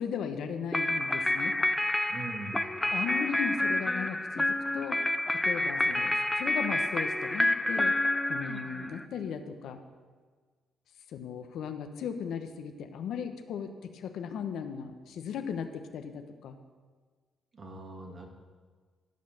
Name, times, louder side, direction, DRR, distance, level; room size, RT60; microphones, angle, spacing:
voice 1, 0.0-1.6 2.9-5.0 5.4-7.9 8.3-9.8 11.1-16.6, left 7 dB, 75° left, 7 dB, 1.0 m, -37 dB
sound 1, 0.7-9.0, left 1 dB, 15° left, 0.6 m, -29 dB
voice 2, 2.1-2.7 17.5-18.3, right 3 dB, 40° right, 1 dB, 2.3 m, -41 dB
14.5 x 5.6 x 6.6 m, 1.5 s
cardioid pair, 90°, 0 cm